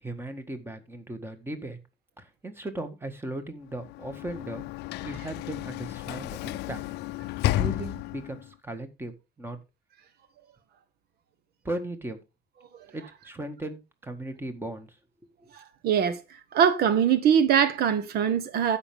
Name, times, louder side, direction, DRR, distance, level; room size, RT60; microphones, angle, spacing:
voice 1, 0.0-1.8 2.2-4.6 5.0-6.8 7.5-9.6 11.6-12.2 12.9-15.0 15.4-15.5, right 1 dB, 15° right, 1.8 m, -37 dB
Sliding door / Slam, 3.7-8.5, left 15 dB, 80° left, 0.5 m, -32 dB
voice 2, 15.5-16.2 16.5-18.8, right 8 dB, 70° right, 1.2 m, -22 dB
15.5 x 5.9 x 3.6 m
cardioid pair, 110°, 17 cm